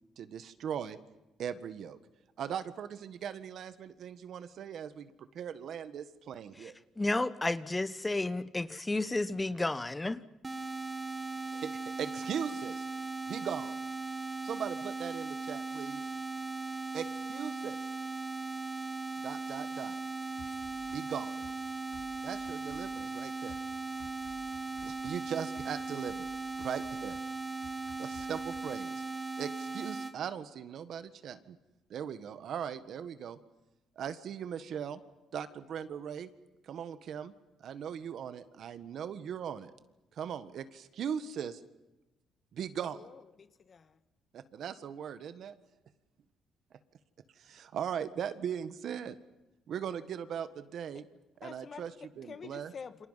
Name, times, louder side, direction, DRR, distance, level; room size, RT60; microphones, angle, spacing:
voice 1, 0.2-1.0 1.4-2.0 2.4-6.7 11.5-12.9 13.3-13.7 14.4-16.0 16.9-17.8 19.2-20.0 20.9-21.3 22.2-23.6 24.8-26.3 26.6-27.2 28.0-29.0 29.4-31.6 31.9-33.4 33.9-35.0 35.3-36.3 36.6-37.3 37.6-39.7 40.1-41.6 42.5-43.0 44.3-45.6 47.4-49.2 49.7-51.0 51.4-52.7, right 8 dB, 65° right, 1.6 m, -39 dB
voice 2, 6.6-10.3, left 2 dB, 15° left, 1.0 m, -32 dB
sound 1, 10.4-30.1, right 3 dB, 20° right, 1.8 m, -38 dB
sound 2, 20.4-28.6, left 5 dB, 65° left, 3.6 m, -56 dB
voice 3, 42.9-44.0 50.9-51.0 51.4-51.8 52.2-53.1, left 6 dB, 45° left, 1.5 m, -48 dB
29.0 x 26.0 x 5.8 m
cardioid pair, 95°, 0 cm